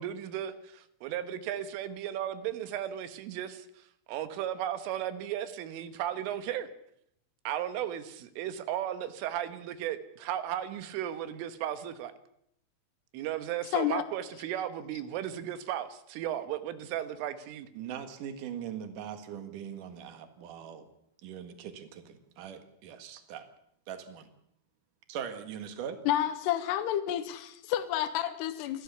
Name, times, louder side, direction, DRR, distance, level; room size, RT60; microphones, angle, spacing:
voice 1, 0.0-3.7 4.1-6.7 7.5-12.1 13.1-17.7, right 11 dB, 80° right, 11 dB, 3.7 m, -35 dB
voice 2, 13.7-14.0 26.0-28.8, left 11 dB, 70° left, 10 dB, 3.1 m, -30 dB
voice 3, 17.7-20.9 21.2-23.4 23.9-24.3 25.1-26.0, right 8 dB, 55° right, 8 dB, 2.5 m, -41 dB
29.5 x 13.0 x 7.0 m, 0.74 s
omnidirectional pair, 5.7 m